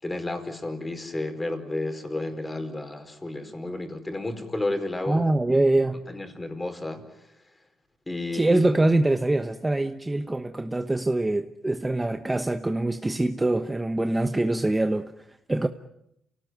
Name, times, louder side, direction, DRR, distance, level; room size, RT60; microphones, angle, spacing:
voice 1, 0.0-5.2 6.1-7.3 8.1-8.9, left 2 dB, 15° left, 4.7 m, -32 dB
voice 2, 5.1-6.1 8.3-15.1 15.5-15.7, right 2 dB, 15° right, 1.0 m, -24 dB
27.5 x 18.0 x 9.3 m
cardioid pair, 90°, 0 cm